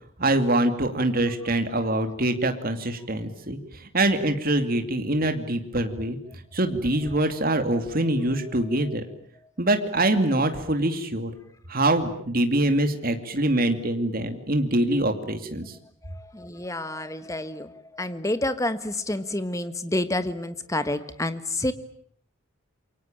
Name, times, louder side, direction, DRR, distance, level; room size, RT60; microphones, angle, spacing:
voice 1, 0.2-6.2 6.5-9.1 9.6-11.3 11.7-15.8, right 1 dB, 40° right, 7 dB, 2.5 m, -24 dB
voice 2, 16.0-21.7, left 1 dB, 15° left, 11 dB, 1.4 m, -29 dB
28.0 x 24.0 x 8.9 m, 0.64 s
head